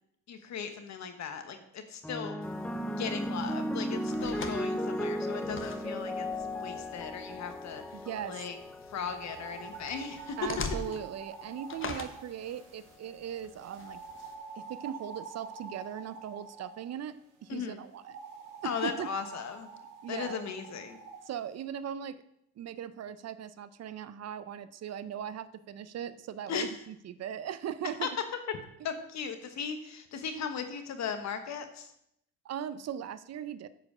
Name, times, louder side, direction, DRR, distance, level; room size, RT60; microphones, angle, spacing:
voice 1, 0.3-2.4 3.0-6.3 6.5-7.8 8.3-8.6 8.9-10.4 17.5-17.8 18.6-19.7 20.1-21.0 26.5-26.7 28.0-28.1 28.5-28.6 28.8-31.9, left 6 dB, 65° left, 8 dB, 1.2 m, -37 dB
sound 1, 2.0-10.6 11.5-11.9, equal, 5° left, 0.5 m, -36 dB
sound 2, 2.4-14.3, left 4 dB, 45° left, 1.1 m, -45 dB
voice 2, 7.9-8.5 10.4-14.0 14.6-18.2 18.6-19.1 20.0-20.5 21.3-22.2 22.6-28.1 28.8-28.9 32.4-33.7, right 9 dB, 60° right, 15 dB, 0.6 m, -39 dB
sound 3, 9.1-13.0 13.6-16.9 18.0-21.2, right 5 dB, 85° right, 1.4 m, -47 dB
8.9 x 4.9 x 6.2 m, 0.77 s
cardioid pair, 90°, 30 cm